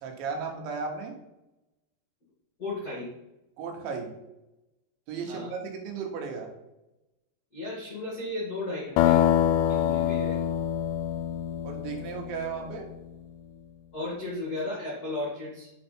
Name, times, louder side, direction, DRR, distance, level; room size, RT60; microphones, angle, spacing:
voice 1, 0.0-1.1 3.6-4.1 5.1-6.5 11.6-12.9, right 5 dB, 75° right, 2 dB, 3.3 m, -35 dB
voice 2, 2.6-3.1 5.3-5.5 7.5-10.4 13.9-15.7, left 2 dB, 65° left, -5 dB, 0.9 m, -35 dB
sound 1, 9.0-12.8, left 11 dB, 80° left, 2.6 m, -25 dB
10.0 x 4.5 x 4.4 m, 0.95 s
omnidirectional pair, 5.4 m